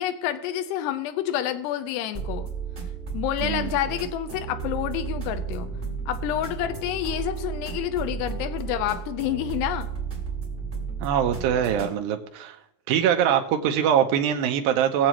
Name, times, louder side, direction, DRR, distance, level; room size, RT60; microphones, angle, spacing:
voice 1, 0.0-2.5 3.1-5.7 6.1-9.9, left 11 dB, 85° left, 10 dB, 2.7 m, -28 dB
sound 1, 2.1-11.9, right 5 dB, 20° right, 1.8 m, -33 dB
voice 2, 3.4-3.8 11.0-12.6 12.9-15.1, right 9 dB, 80° right, 5 dB, 2.1 m, -23 dB
20.5 x 7.3 x 3.0 m, 0.81 s
omnidirectional pair, 5.0 m